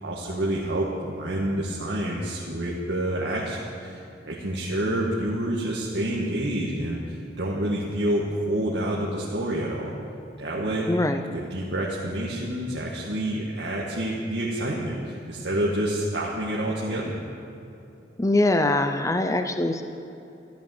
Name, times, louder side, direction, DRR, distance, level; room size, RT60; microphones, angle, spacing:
voice 1, 0.0-9.9 10.4-10.9 11.3-17.2, right 1 dB, 75° right, -5 dB, 1.9 m, -28 dB
voice 2, 10.9-11.2 18.2-19.8, left 2 dB, 20° left, 7 dB, 0.6 m, -22 dB
14.0 x 12.5 x 7.8 m, 2.8 s
head